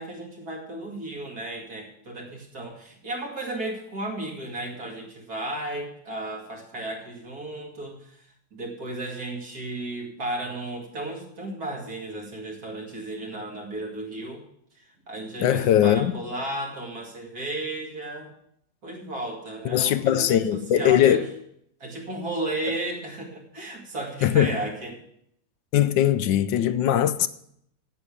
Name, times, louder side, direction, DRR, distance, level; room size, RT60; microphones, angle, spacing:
voice 1, 0.0-8.2 8.5-14.4 14.7-18.3 18.8-21.2 21.8-25.0, right 2 dB, 50° right, 2.8 m, -34 dB
voice 2, 15.4-16.1 19.6-21.2 24.2-24.6 25.7-27.3, left 11 dB, 80° left, 1.3 m, -20 dB
9.5 x 8.2 x 8.4 m
omnidirectional pair, 2.0 m